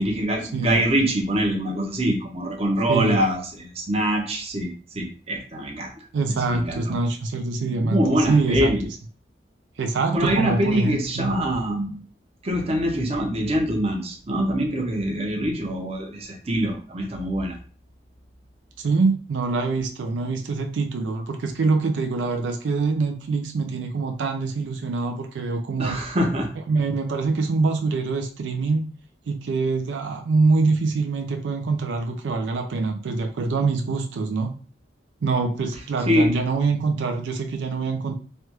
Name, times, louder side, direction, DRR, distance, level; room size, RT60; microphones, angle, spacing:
voice 1, 0.0-4.7 4.9-5.9 6.5-6.9 7.8-8.9 10.1-11.9 12.4-17.6 25.8-26.5 36.1-36.3, equal, 35° right, 2 dB, 0.7 m, -24 dB
voice 2, 0.5-0.8 2.9-3.2 6.1-8.7 9.8-11.3 18.8-26.0 26.7-28.9 29.3-34.5 35.2-38.1, right 3 dB, 80° right, 5 dB, 0.4 m, -24 dB
3.2 x 2.3 x 2.9 m, 0.38 s
head